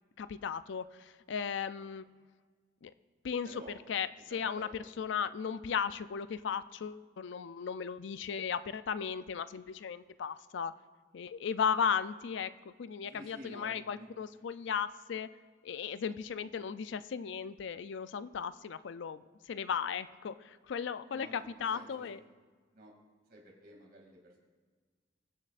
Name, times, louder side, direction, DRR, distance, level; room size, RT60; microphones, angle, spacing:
voice 1, 0.2-2.0 2.8-2.9 3.2-3.5 3.9-10.7 11.1-15.3 15.6-22.2, left 7 dB, 65° left, 14 dB, 0.4 m, -36 dB
voice 2, 3.4-3.7 4.3-4.8 13.1-14.1 16.4-16.5 21.1-22.0 22.7-22.9 23.3-24.4, right 1 dB, 50° right, -1 dB, 2.6 m, -51 dB
22.5 x 7.5 x 2.5 m, 1.5 s
head